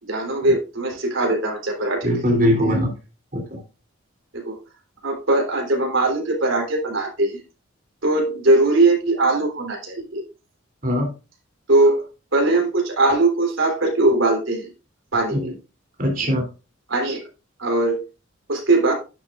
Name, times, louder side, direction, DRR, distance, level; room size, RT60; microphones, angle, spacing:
voice 1, 0.0-2.1 4.3-4.6 5.0-7.4 8.0-10.2 11.7-12.1 12.3-14.7 15.1-15.5 16.9-17.2 17.6-18.0 18.5-18.9, right 2 dB, 70° right, 0 dB, 3.7 m, -20 dB
voice 2, 2.0-2.9 3.3-3.6 10.8-11.1 15.4-15.5 16.0-16.5, equal, 40° right, 1 dB, 3.2 m, -21 dB
10.5 x 7.9 x 2.5 m, 0.30 s
head